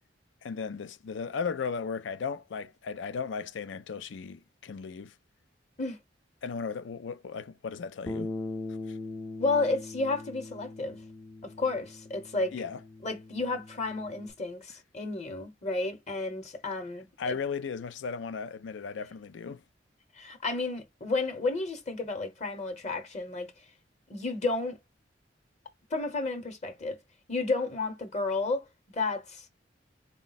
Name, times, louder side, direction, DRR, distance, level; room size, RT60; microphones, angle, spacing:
voice 1, 0.4-5.1 6.4-8.3 8.9-9.0 12.5-12.8 17.2-19.6, left 5 dB, 75° left, 0.4 m, -36 dB
Bass guitar, 8.1-14.3, left 2 dB, 20° left, 0.4 m, -41 dB
voice 2, 9.4-11.0 11.4-12.6 13.0-17.4 20.1-23.5 24.1-24.8 25.9-27.0 27.3-28.6 28.9-29.5, left 3 dB, 40° left, 1.0 m, -32 dB
4.1 x 2.2 x 3.9 m
head